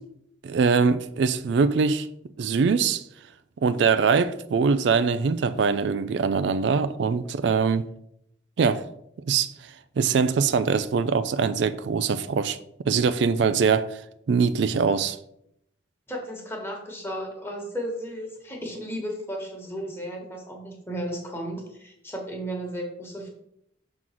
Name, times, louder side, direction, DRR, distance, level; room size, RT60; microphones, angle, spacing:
voice 1, 0.4-2.1 2.4-3.0 3.6-7.9 8.6-8.9 9.3-12.6 12.9-14.0 14.3-15.2, right 5 dB, 65° right, 0.4 m, -23 dB
voice 2, 16.1-23.3, equal, 10° left, 1.4 m, -34 dB
6.2 x 3.8 x 5.9 m
head